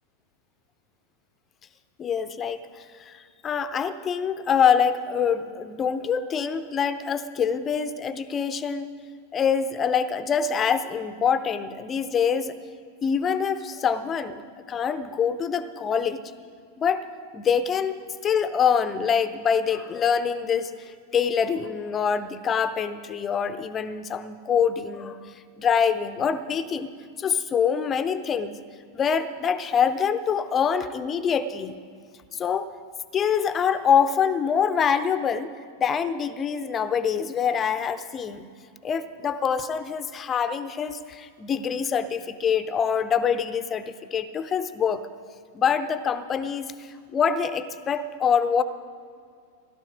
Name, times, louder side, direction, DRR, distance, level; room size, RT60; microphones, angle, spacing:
voice 1, 2.0-3.2 3.4-8.9 9.3-12.6 13.0-14.4 14.7-16.2 16.8-17.1 17.3-18.0 18.2-26.9 27.2-28.6 28.9-31.8 32.3-32.7 33.1-35.5 35.8-38.5 38.8-45.0 45.5-48.6, left 7 dB, 25° left, 12 dB, 0.8 m, -25 dB
16.5 x 12.0 x 5.1 m, 2.3 s
figure-of-eight pair, 90°, 0 cm